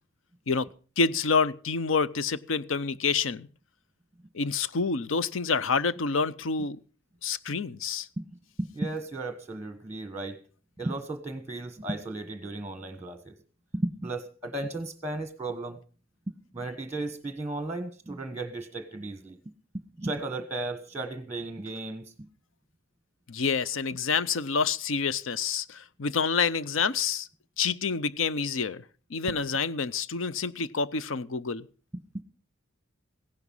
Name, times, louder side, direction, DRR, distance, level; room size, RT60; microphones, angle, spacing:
voice 1, 1.0-3.5 4.3-6.8 7.2-8.1 23.3-27.3 27.6-28.8 29.1-31.7, left 5 dB, 70° left, 0.6 m, -28 dB
voice 2, 8.2-10.4 10.8-13.4 13.7-15.8 16.3-19.4 19.7-22.3 32.1-32.2, right 2 dB, 10° right, 1.2 m, -35 dB
16.0 x 11.0 x 5.5 m
head